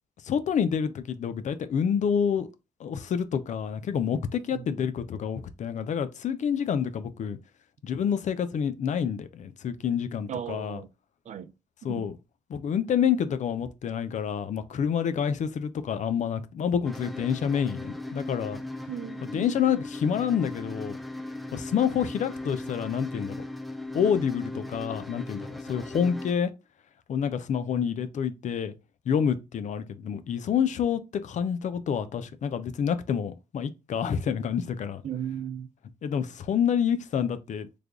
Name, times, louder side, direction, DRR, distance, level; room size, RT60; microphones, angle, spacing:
voice 1, 0.2-2.5 2.8-7.4 7.8-10.8 11.8-12.2 12.5-18.6 19.3-21.0 21.5-23.3 23.9-26.5 27.1-28.7 29.1-35.0 36.0-37.7, left 7 dB, 65° left, 0.5 m, -28 dB
voice 2, 4.5-4.9 10.3-10.9 11.3-11.5 11.9-12.1 18.9-19.5 35.0-35.7, right 9 dB, 60° right, 0.5 m, -36 dB
sound 1, 16.8-26.3, left 2 dB, ahead, 0.4 m, -38 dB
3.3 x 2.2 x 3.6 m
cardioid pair, 70°, 14 cm